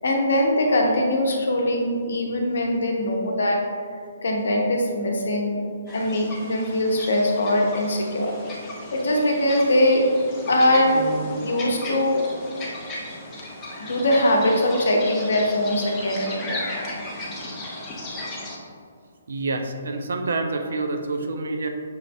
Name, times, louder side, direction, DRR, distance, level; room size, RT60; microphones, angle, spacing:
voice 1, 0.0-3.6 4.2-5.6 5.9-8.3 8.9-12.2 13.9-16.6, left 1 dB, 60° left, 1 dB, 0.7 m, -22 dB
sound 1, 5.9-18.6, left 1 dB, 15° left, 0.7 m, -35 dB
voice 2, 19.3-21.7, right 3 dB, 60° right, 4 dB, 0.4 m, -27 dB
6.1 x 2.6 x 3.3 m, 2.1 s
figure-of-eight pair, 130°, 0 cm